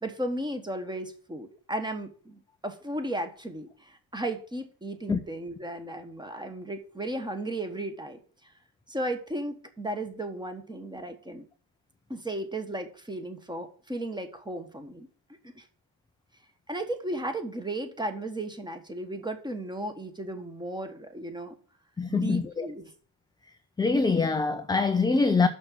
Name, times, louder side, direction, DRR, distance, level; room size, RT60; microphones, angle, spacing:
voice 1, 0.0-8.2 8.9-11.5 12.1-15.1 15.5-15.7 16.7-21.5 22.1-22.9, right 1 dB, 10° right, 1.3 m, -35 dB
voice 2, 22.0-22.7 23.8-25.5, left 4 dB, 10° left, 0.3 m, -24 dB
6.4 x 6.2 x 7.5 m
cardioid pair, 130°, 49 cm